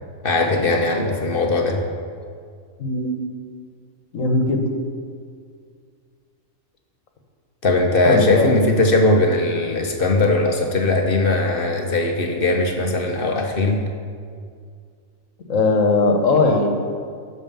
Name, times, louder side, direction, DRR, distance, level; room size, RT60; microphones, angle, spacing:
voice 1, 0.2-1.8 7.6-13.9, left 2 dB, 45° left, 3 dB, 1.1 m, -19 dB
voice 2, 2.8-3.2 4.1-4.6 8.0-8.5 15.5-16.7, left 3 dB, 75° left, 4 dB, 1.5 m, -19 dB
9.1 x 6.5 x 6.9 m, 2.2 s
omnidirectional pair, 1.4 m